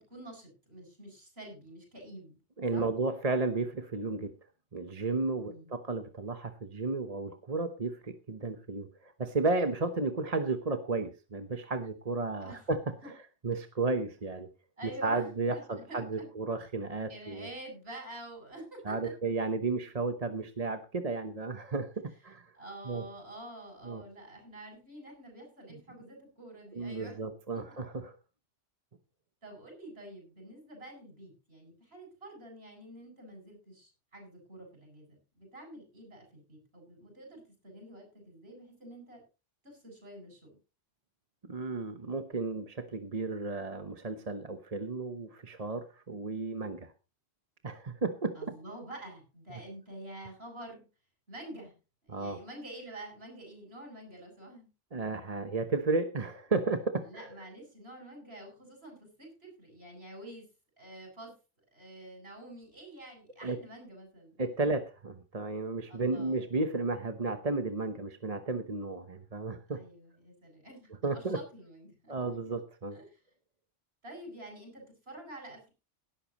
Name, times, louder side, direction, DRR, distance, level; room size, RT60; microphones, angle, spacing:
voice 1, 0.0-2.4 2.7-2.9 5.4-5.7 12.4-12.7 13.0-13.1 14.8-16.3 17.1-19.1 22.5-27.2 27.5-27.8 29.4-39.2 39.6-40.6 48.3-50.9 51.3-51.8 52.0-54.7 57.0-60.4 60.8-61.3 61.7-64.5 65.9-66.5 69.7-72.2 72.9-73.1 74.0-75.7, right 1 dB, 60° right, 1 dB, 8.4 m, -48 dB
voice 2, 2.6-4.3 4.7-12.8 13.1-13.2 13.4-14.5 15.0-17.5 18.8-22.5 22.9-23.0 23.8-24.0 25.7-25.8 26.7-28.2 41.5-46.9 47.6-48.4 52.1-52.4 54.9-57.3 63.4-63.6 64.4-69.8 71.0-71.4 72.1-73.0, right 3 dB, 35° right, 7 dB, 1.1 m, -33 dB
17.5 x 12.5 x 3.0 m, 0.32 s
omnidirectional pair, 1.2 m